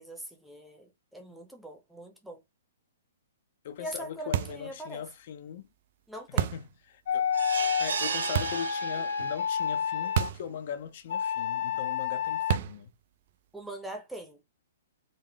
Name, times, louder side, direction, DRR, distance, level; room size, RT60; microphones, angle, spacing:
voice 1, 0.0-2.4 3.8-5.0 6.1-6.5 13.5-14.4, right 1 dB, 5° right, 0.7 m, -42 dB
voice 2, 3.6-5.7 6.4-7.3 7.8-12.9, left 8 dB, 45° left, 0.5 m, -39 dB
sound 1, 4.3-4.7 6.4-6.7 8.3-8.7 10.2-10.5 10.8-10.9 12.5-12.9, right 11 dB, 45° right, 0.3 m, -29 dB
sound 2, 7.1-10.3 11.1-12.6, left 7 dB, 60° left, 1.0 m, -30 dB
sound 3, 7.3-9.6 10.0-10.1 10.5-10.6, right 5 dB, 85° right, 0.7 m, -34 dB
3.8 x 2.0 x 3.4 m
hypercardioid pair, 165°, 0 cm